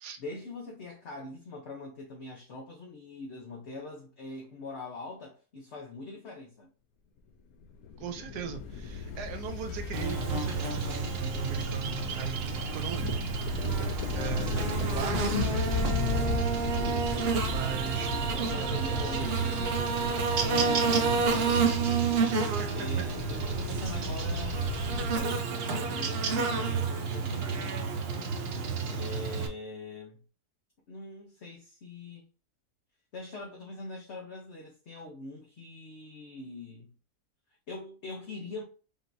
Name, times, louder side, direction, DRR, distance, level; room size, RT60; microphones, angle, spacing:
voice 1, 0.2-6.7 13.8-14.0 18.5-19.7 20.6-21.7 22.7-24.7 25.1-27.7 28.9-30.2 30.9-32.3 33.1-36.9 37.7-38.6, left 2 dB, 50° left, 1.1 m, -43 dB
sound 1, 7.6-25.2, left 5 dB, 70° left, 1.1 m, -36 dB
voice 2, 8.0-13.2 14.1-15.7 17.5-19.6 22.4-23.0, right 8 dB, 80° right, 1.3 m, -40 dB
Buzz, 9.9-29.5, right 5 dB, 60° right, 0.7 m, -30 dB
sound 2, 15.8-29.0, left 2 dB, 10° left, 0.6 m, -46 dB
5.3 x 2.8 x 2.6 m
omnidirectional pair, 1.7 m